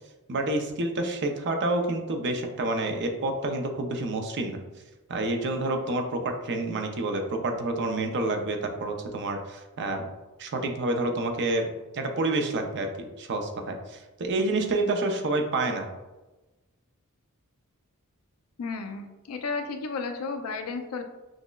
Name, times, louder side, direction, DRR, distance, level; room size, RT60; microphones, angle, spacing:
voice 1, 0.3-4.6 5.1-10.1 10.4-11.6 11.9-15.9, right 2 dB, 55° right, 4 dB, 0.5 m, -28 dB
voice 2, 18.6-21.0, left 4 dB, 75° left, 6 dB, 0.4 m, -33 dB
6.1 x 2.0 x 2.2 m, 1.1 s
head